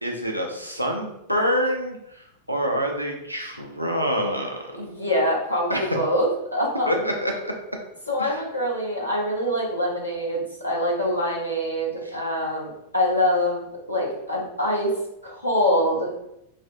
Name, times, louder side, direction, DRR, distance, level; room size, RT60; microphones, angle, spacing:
voice 1, 0.0-4.6 5.7-6.0 6.9-7.5 8.2-8.4, equal, 90° right, 1 dB, 0.4 m, -26 dB
voice 2, 4.7-7.0 8.1-14.9 15.2-16.1, left 1 dB, 85° left, -3 dB, 0.8 m, -25 dB
3.3 x 2.0 x 2.5 m, 0.82 s
figure-of-eight pair, 90°, 0 cm